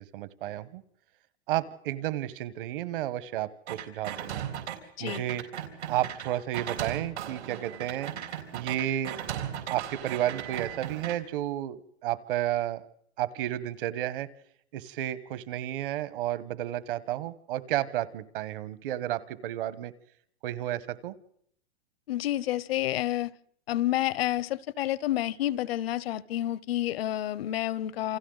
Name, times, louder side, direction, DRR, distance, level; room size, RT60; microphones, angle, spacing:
voice 1, 0.1-0.8 1.5-4.4 5.0-5.4 5.9-8.1 8.5-9.2 9.7-12.8 13.2-14.3 14.7-19.9 20.4-21.1, right 13 dB, 55° right, 16 dB, 1.2 m, -32 dB
sound 1, 3.7-4.7 5.1-11.2, right 10 dB, 80° right, 4.0 m, -37 dB
voice 2, 22.1-23.3 23.7-28.2, left 13 dB, 65° left, 22 dB, 0.7 m, -29 dB
28.5 x 27.0 x 4.0 m, 0.71 s
hypercardioid pair, 145°, 33 cm